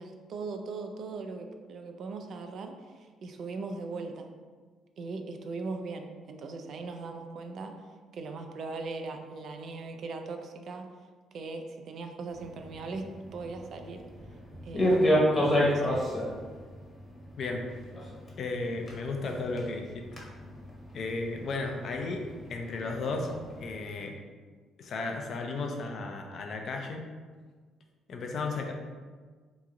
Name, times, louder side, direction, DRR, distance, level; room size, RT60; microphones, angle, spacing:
voice 1, 0.0-4.3 5.0-7.8 8.1-10.9 11.3-14.0 14.6-15.9, right 3 dB, 60° right, 5 dB, 0.3 m, -39 dB
sound 1, 12.3-23.7, equal, 25° left, 0.9 m, -32 dB
voice 2, 18.4-20.1 20.9-22.2 22.5-23.3 23.6-24.2 24.8-27.0 28.1-28.7, left 3 dB, 55° left, 3 dB, 0.5 m, -34 dB
3.0 x 2.4 x 3.7 m, 1.5 s
cardioid pair, 90°, 0 cm